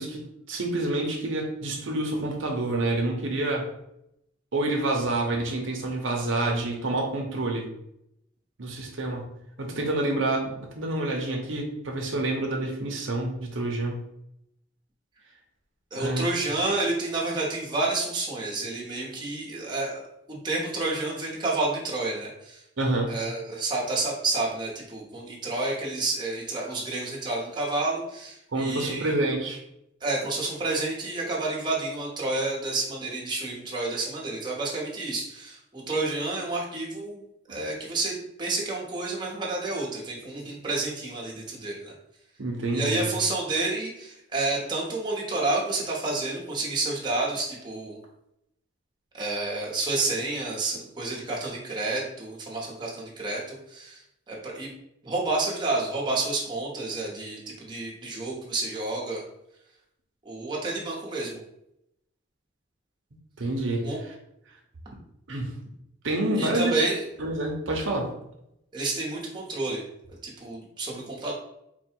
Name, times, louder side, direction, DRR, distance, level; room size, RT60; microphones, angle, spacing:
voice 1, 0.0-3.7 4.5-7.7 8.6-9.3 9.6-14.0 15.9-16.3 22.8-23.1 28.5-29.6 37.5-37.6 42.4-43.1 63.4-63.9 65.3-65.5 66.0-66.7 67.2-68.1, right 2 dB, 85° right, 1 dB, 0.8 m, -28 dB
voice 2, 15.9-20.0 20.3-22.6 23.1-29.1 30.0-37.2 37.5-41.9 42.7-48.0 49.1-54.0 54.3-54.7 55.0-59.2 60.2-61.4 63.8-64.0 66.4-67.1 68.7-69.8 70.2-71.3, right 2 dB, 25° right, -3 dB, 1.0 m, -29 dB
4.2 x 2.3 x 4.4 m, 0.80 s
head